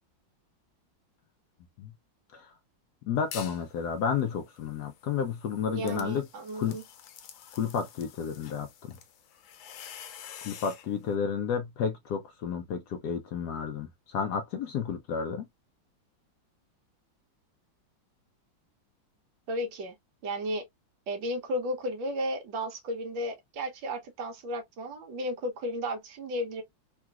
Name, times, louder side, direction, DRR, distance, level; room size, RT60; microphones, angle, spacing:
voice 1, 3.1-6.3 6.6-6.8 7.5-9.0 10.4-15.5, left 7 dB, 70° left, 1.0 m, -31 dB
sound 1, 3.2-3.7 4.1-10.9, left 9 dB, 90° left, 1.4 m, -48 dB
voice 2, 5.7-6.8 19.5-20.0 20.2-20.7 21.1-26.6, equal, 75° right, 1.6 m, -34 dB
3.8 x 2.4 x 2.2 m
omnidirectional pair, 2.1 m